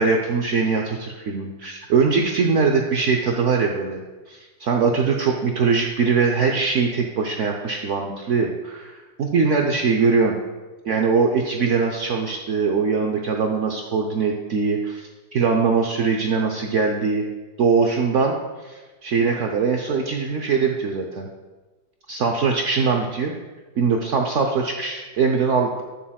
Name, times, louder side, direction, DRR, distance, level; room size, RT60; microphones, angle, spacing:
voice 1, 0.0-4.0 4.3-10.4 10.9-17.3 17.6-18.3 18.6-21.3 22.1-23.3 23.8-25.8, right 5 dB, 80° right, 2 dB, 0.6 m, -22 dB
8.5 x 7.1 x 2.3 m, 1.2 s
omnidirectional pair, 1.9 m